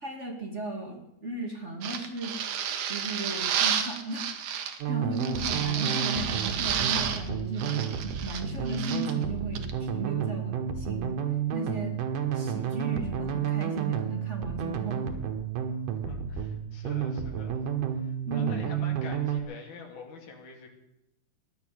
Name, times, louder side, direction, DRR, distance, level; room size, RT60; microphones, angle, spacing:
voice 1, 0.0-2.4 2.9-4.5 4.9-11.2 11.5-12.0 12.3-15.1 18.3-18.6, right 1 dB, 25° right, 2 dB, 1.8 m, -36 dB
sound 1, 1.8-4.8 5.1-7.3 7.6-9.1 9.5-9.7, right 8 dB, 75° right, 2.7 m, -31 dB
sound 2, 4.8-19.4, right 8 dB, 90° right, 3.0 m, -31 dB
voice 2, 15.9-17.6 17.9-20.7, left 3 dB, 75° left, 1 dB, 4.1 m, -45 dB
15.5 x 11.5 x 8.3 m, 0.82 s
omnidirectional pair, 3.6 m